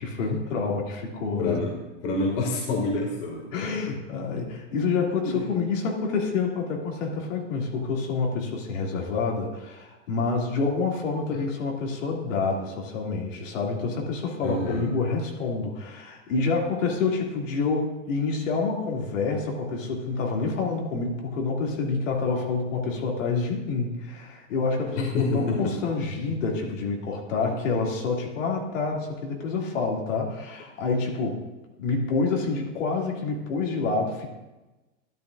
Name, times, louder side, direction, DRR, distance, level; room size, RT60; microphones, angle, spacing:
voice 1, 0.0-1.6 3.5-31.4 31.8-34.3, left 4 dB, 85° left, -1 dB, 2.5 m, -28 dB
voice 2, 1.4-1.7 2.0-3.5 5.2-5.4 14.4-14.8 25.1-25.7, left 2 dB, 70° left, 0 dB, 2.1 m, -27 dB
12.0 x 11.5 x 2.5 m, 1.1 s
supercardioid pair, 145°, 37 cm